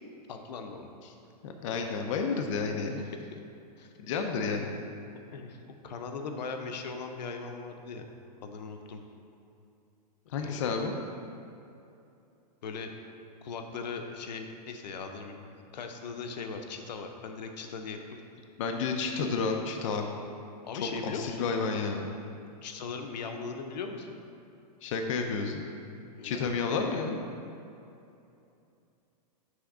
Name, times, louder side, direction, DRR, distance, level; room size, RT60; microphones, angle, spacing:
voice 1, 0.3-0.9 2.9-3.4 3.8-3.9 5.3-8.1 8.4-9.0 10.4-10.6 12.6-12.9 13.4-18.0 20.6-21.5 22.6-24.2 26.2-26.6, left 5 dB, 90° left, 5 dB, 0.7 m, -39 dB
voice 2, 1.4-3.0 4.0-4.7 10.3-10.9 18.6-20.0 21.0-22.1 24.8-25.6 26.2-27.2, left 4 dB, 50° left, 3 dB, 0.5 m, -31 dB
6.2 x 3.4 x 6.0 m, 2.7 s
supercardioid pair, 170°, 21 cm